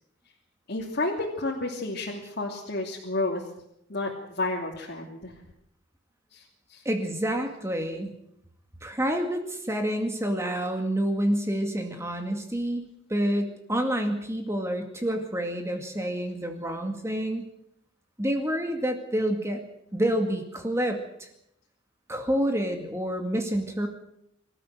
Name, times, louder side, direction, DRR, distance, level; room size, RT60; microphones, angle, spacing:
voice 1, 0.7-3.4 3.9-5.3 6.3-6.8, left 2 dB, 55° left, -3 dB, 3.0 m, -31 dB
voice 2, 6.8-8.1 8.8-12.8 13.1-17.5 18.2-19.6 19.9-21.3 22.1-23.9, equal, 15° right, 4 dB, 2.2 m, -28 dB
25.0 x 14.0 x 7.9 m, 0.76 s
head